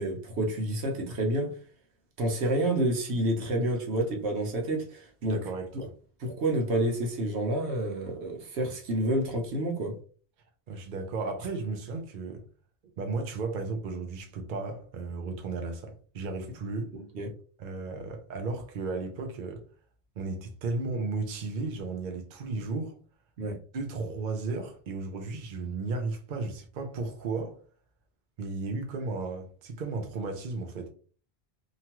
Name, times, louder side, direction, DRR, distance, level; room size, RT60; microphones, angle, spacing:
voice 1, 0.0-1.5 2.2-5.4 6.2-9.9 16.9-17.3 23.4-23.6, right 1 dB, 85° right, 1.1 m, -29 dB
voice 2, 5.2-5.9 10.7-12.4 13.0-16.9 17.6-19.6 20.2-23.0 23.7-27.6 28.4-30.9, right 3 dB, 55° right, 0.6 m, -34 dB
2.9 x 2.3 x 2.9 m
omnidirectional pair, 1.1 m